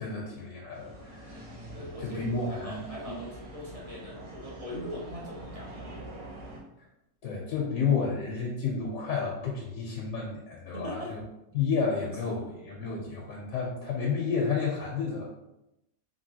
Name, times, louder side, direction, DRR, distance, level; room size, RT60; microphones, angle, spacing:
voice 1, 0.0-1.5 1.8-3.1 7.2-11.2 11.5-15.3, left 5 dB, 80° left, -2 dB, 1.0 m, -31 dB
sound 1, 0.7-6.6, right 1 dB, 60° right, 1.2 m, -45 dB
voice 2, 1.7-6.0 7.2-7.7 10.7-11.1 12.2-12.6, equal, 40° right, -5 dB, 0.5 m, -41 dB
3.0 x 2.6 x 2.7 m, 0.87 s
omnidirectional pair, 1.5 m